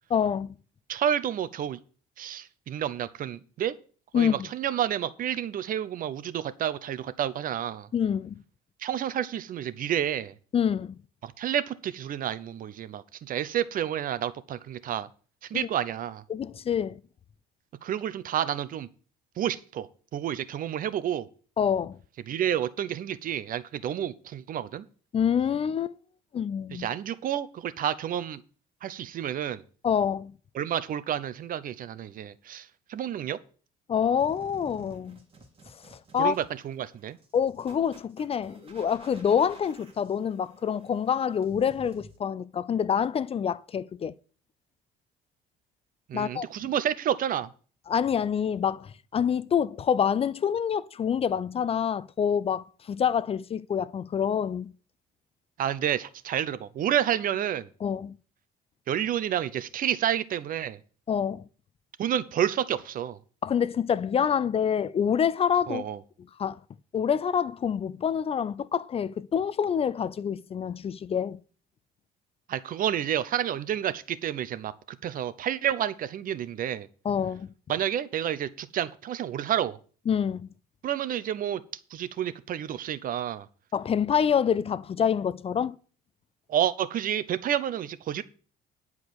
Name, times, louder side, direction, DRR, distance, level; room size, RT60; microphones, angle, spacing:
voice 1, 0.1-0.5 4.1-4.5 7.9-8.4 10.5-11.0 16.3-17.0 21.6-22.0 25.1-25.9 26.3-26.9 29.8-30.3 33.9-35.2 36.1-36.3 37.3-44.1 46.1-46.5 47.9-54.7 57.8-58.1 61.1-61.4 63.4-65.8 66.4-66.6 66.9-71.4 77.0-77.5 80.1-80.5 83.7-85.8, left 8 dB, 35° left, 0.5 m, -26 dB
voice 2, 0.9-1.8 2.2-3.7 4.1-7.9 8.8-10.3 11.2-15.1 15.5-16.2 17.8-18.9 19.4-21.3 22.3-24.8 26.7-28.4 28.8-29.6 30.5-33.4 36.2-37.2 46.1-47.5 55.6-57.7 58.9-60.8 62.0-63.2 65.7-66.0 72.5-74.7 75.0-76.9 77.7-79.8 80.8-81.6 81.9-83.5 86.5-88.2, right 10 dB, 55° right, 0.8 m, -30 dB
sound 1, 34.2-42.2, right 2 dB, 30° right, 2.7 m, -53 dB
10.5 x 4.8 x 8.0 m
cardioid pair, 110°, 17 cm